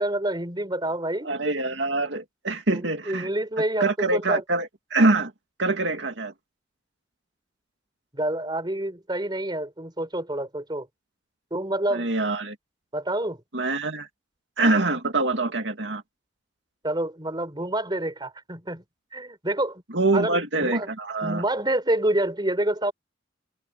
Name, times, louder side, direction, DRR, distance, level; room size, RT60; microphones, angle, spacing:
voice 1, 0.0-1.3 2.7-4.4 8.1-10.9 11.5-12.1 12.9-13.4 16.8-18.8 19.1-19.8 20.1-20.9 21.2-22.9, right 1 dB, 25° right, 4.7 m, -27 dB
voice 2, 1.2-3.3 3.8-5.3 5.6-6.3 11.9-12.6 13.5-14.1 14.6-16.0 19.9-21.4, right 2 dB, 75° right, 2.3 m, -24 dB
head